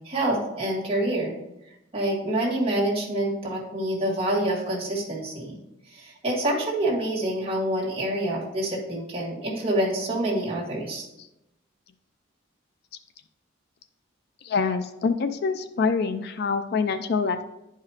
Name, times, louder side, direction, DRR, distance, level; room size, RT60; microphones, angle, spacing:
voice 1, 0.0-1.4 1.9-5.6 5.9-11.1, right 1 dB, 30° right, -4 dB, 2.0 m, -27 dB
voice 2, 14.4-17.4, left 5 dB, 50° left, 10 dB, 0.4 m, -25 dB
11.0 x 4.8 x 2.9 m, 0.89 s
head